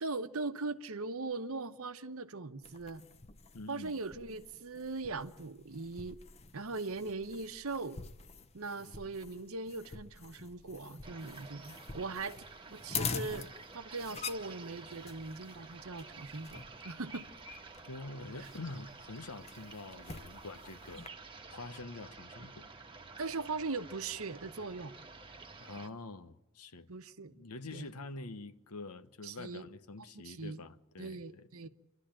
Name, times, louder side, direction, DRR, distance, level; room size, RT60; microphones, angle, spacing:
voice 1, 0.0-3.1 3.7-6.2 6.5-8.0 8.5-12.4 12.7-13.5 13.7-17.2 23.2-24.9 26.9-27.3 27.7-27.9 29.2-29.7 30.2-30.6 31.0-31.7, right 3 dB, 70° right, 0.9 m, -40 dB
sound 1, 2.6-21.1, left 5 dB, 30° left, 0.8 m, -46 dB
voice 2, 3.5-4.0 8.8-8.9 17.8-21.1 21.5-22.7 25.6-26.9 27.3-31.7, left 2 dB, 85° left, 1.1 m, -46 dB
sound 2, 11.0-25.9, right 3 dB, 25° right, 1.3 m, -51 dB
28.5 x 12.5 x 8.8 m
head